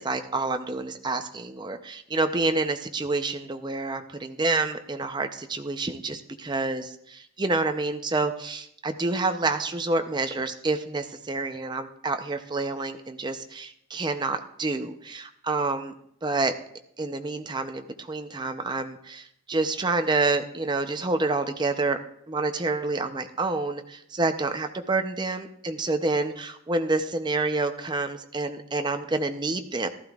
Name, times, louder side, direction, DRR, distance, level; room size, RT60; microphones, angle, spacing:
voice 1, 0.0-6.8 7.4-15.9 16.2-16.5 17.0-22.0 22.3-29.9, right 3 dB, 20° right, 7 dB, 0.6 m, -28 dB
15.0 x 12.5 x 2.4 m, 0.72 s
head